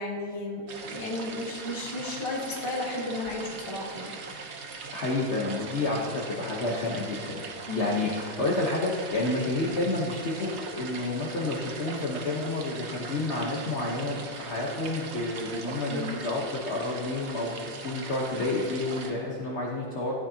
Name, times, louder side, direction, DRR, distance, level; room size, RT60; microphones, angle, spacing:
voice 1, 0.0-4.1 7.7-7.9 15.9-16.2, left 2 dB, 15° left, -2 dB, 1.2 m, -34 dB
sound 1, 0.7-19.1, right 4 dB, 55° right, 0.8 m, -40 dB
voice 2, 4.9-7.4 7.7-20.1, left 2 dB, 40° left, -4 dB, 1.1 m, -30 dB
14.0 x 9.6 x 2.9 m, 2.2 s
omnidirectional pair, 2.3 m